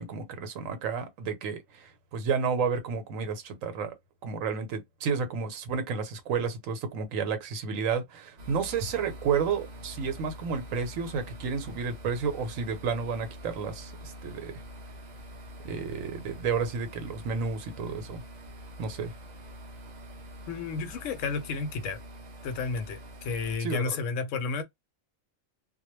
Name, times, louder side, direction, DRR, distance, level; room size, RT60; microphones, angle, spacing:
voice 1, 0.0-3.9 4.2-14.5 15.6-18.2 18.8-19.1 23.6-23.8, right 6 dB, 75° right, 1.1 m, -31 dB
sound 1, 8.4-23.6, equal, 55° right, 0.4 m, -45 dB
voice 2, 20.5-22.0 22.4-24.6, left 4 dB, 70° left, 0.9 m, -32 dB
2.2 x 2.1 x 3.0 m
omnidirectional pair, 1.4 m